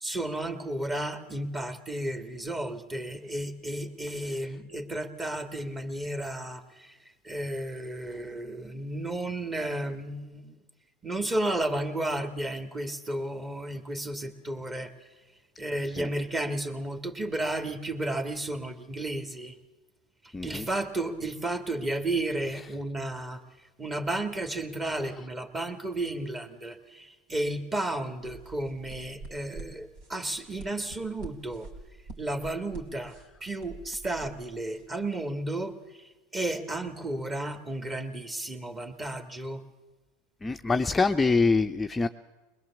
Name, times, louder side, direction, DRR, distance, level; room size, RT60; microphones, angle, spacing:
voice 1, 0.0-7.0 7.2-10.6 11.0-14.9 15.6-19.5 20.4-23.4 23.8-31.7 32.2-33.1 33.4-39.6, right 1 dB, 20° right, 8 dB, 2.0 m, -33 dB
voice 2, 20.3-20.7 40.4-42.1, left 4 dB, 15° left, 6 dB, 0.6 m, -25 dB
sound 1, 28.2-34.8, right 3 dB, 65° right, 3.6 m, -47 dB
21.5 x 20.5 x 7.2 m, 1.2 s
hypercardioid pair, 95°, 0 cm